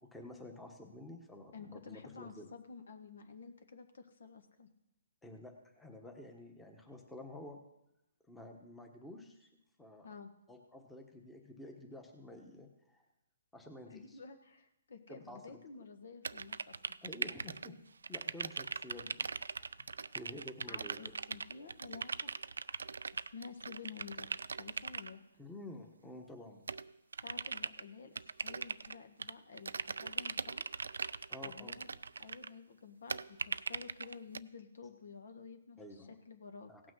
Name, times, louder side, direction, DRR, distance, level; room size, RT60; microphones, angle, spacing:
voice 1, 0.0-2.5 5.2-7.6 8.3-9.5 9.8-10.1 10.5-13.0 13.5-14.2 15.1-15.6 17.0-17.8 18.1-19.3 20.1-21.1 25.4-26.6 31.3-31.8 35.8-36.2 36.7-36.8, left 1 dB, 5° left, 2 dB, 1.2 m, -50 dB
voice 2, 1.5-4.7 10.0-10.3 13.9-17.0 20.7-22.3 23.1-24.3 24.6-25.2 27.2-28.1 28.4-30.6 31.4-31.9 32.2-36.7, left 5 dB, 70° left, 7 dB, 1.4 m, -51 dB
sound 1, 16.2-17.7 18.0-25.1 26.7-27.8 28.2-29.3 29.6-32.5 33.1-34.4, right 4 dB, 90° right, 0.3 m, -40 dB
16.5 x 6.1 x 6.3 m, 0.87 s
hypercardioid pair, 150°, 0 cm